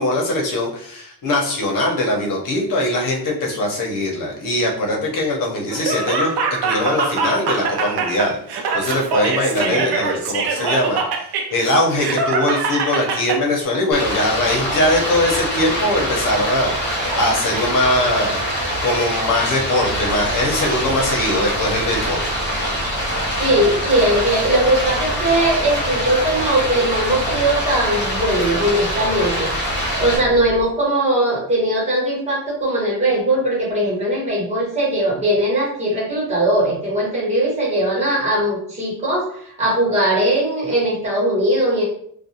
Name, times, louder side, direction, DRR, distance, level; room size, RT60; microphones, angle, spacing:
voice 1, 0.0-6.3 6.6-11.0 11.5-16.8 17.1-18.4 18.8-22.2, left 1 dB, 55° left, 0 dB, 0.8 m, -21 dB
Laughter, 5.7-13.4, right 4 dB, 75° right, 0.6 m, -23 dB
voice 2, 9.6-9.9 23.4-29.5 30.0-41.8, right 1 dB, 15° right, -7 dB, 1.2 m, -19 dB
Stream, 13.9-30.2, equal, 25° left, 0.9 m, -24 dB
sound 1, 20.0-30.6, equal, 5° left, 0.4 m, -34 dB
2.4 x 2.3 x 2.7 m, 0.64 s
cardioid pair, 160°, 39 cm